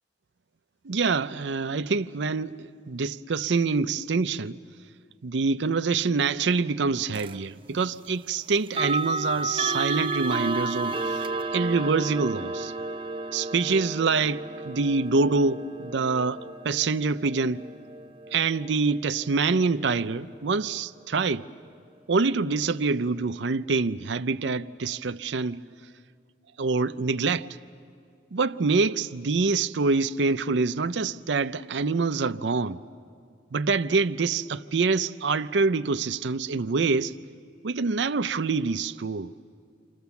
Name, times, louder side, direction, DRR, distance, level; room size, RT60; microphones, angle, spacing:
voice 1, 0.8-4.6 5.2-11.2 11.5-12.7 13.3-16.4 16.6-17.6 18.3-21.5 22.1-25.6 26.6-27.5 28.3-32.8 33.5-37.1 37.6-39.3, right 4 dB, 75° right, 0.6 m, -25 dB
sound 1, 7.1-7.4 8.7-19.5, right 3 dB, 25° right, 0.6 m, -32 dB
28.5 x 26.0 x 7.0 m
head